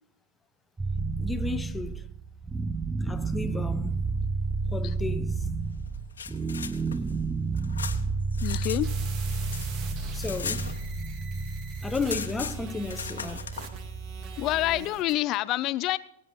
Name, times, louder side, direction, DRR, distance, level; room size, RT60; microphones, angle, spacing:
sound 1, 0.8-14.8, right 4 dB, 10° right, 0.7 m, -31 dB
voice 1, 1.2-2.0 3.0-4.1 4.7-5.5 10.1-10.7 11.8-13.5, left 3 dB, 10° left, 0.9 m, -33 dB
sound 2, 5.9-8.8 9.1-11.3 11.6-11.7 11.9-13.7, left 7 dB, 80° left, 1.2 m, -38 dB
voice 2, 8.4-8.9 14.4-16.0, left 16 dB, 40° left, 0.4 m, -27 dB
sound 3, 8.8-15.1, right 6 dB, 40° right, 1.9 m, -45 dB
22.0 x 9.6 x 4.0 m
hypercardioid pair, 105°, 0 cm